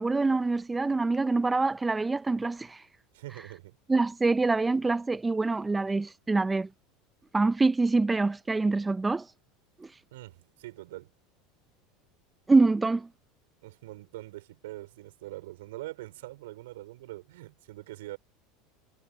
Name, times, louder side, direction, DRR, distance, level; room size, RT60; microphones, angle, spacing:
voice 1, 0.0-2.8 3.9-6.7 7.3-9.3 9.8-9.9 12.5-13.1, right 3 dB, 15° right, 0.8 m, -25 dB
voice 2, 3.1-3.8 10.1-11.1 13.6-18.2, right 17 dB, 75° right, 4.5 m, -43 dB
hypercardioid pair, 90°, 0 cm